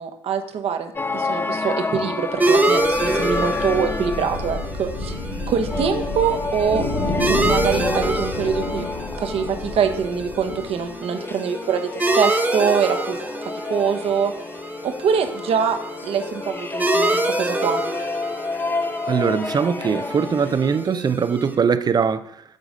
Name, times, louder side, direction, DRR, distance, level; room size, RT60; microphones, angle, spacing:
voice 1, 0.0-5.1 5.5-6.8 7.2-8.8 9.2-13.2 13.7-14.3 14.8-15.8 16.0-17.8, right 7 dB, 60° right, 1.1 m, -24 dB
sound 1, 1.0-20.9, left 4 dB, 20° left, 0.4 m, -30 dB
sound 2, 2.4-21.5, right 2 dB, 15° right, 1.4 m, -27 dB
sound 3, 2.5-11.0, left 2 dB, 65° left, 3.2 m, -30 dB
voice 2, 19.0-22.4, right 6 dB, 35° right, 0.6 m, -21 dB
9.1 x 4.0 x 5.0 m
supercardioid pair, 80°, 11 cm